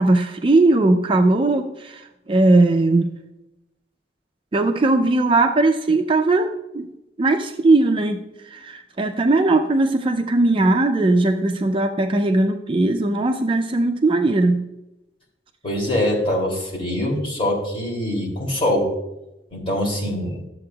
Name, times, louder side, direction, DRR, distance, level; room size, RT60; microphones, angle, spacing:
voice 1, 0.0-3.1 4.5-6.9 7.2-14.7, right 2 dB, 30° right, 6 dB, 0.4 m, -19 dB
voice 2, 15.6-18.9 19.5-20.4, left 1 dB, 30° left, -2 dB, 2.8 m, -23 dB
12.5 x 7.5 x 2.3 m, 0.94 s
head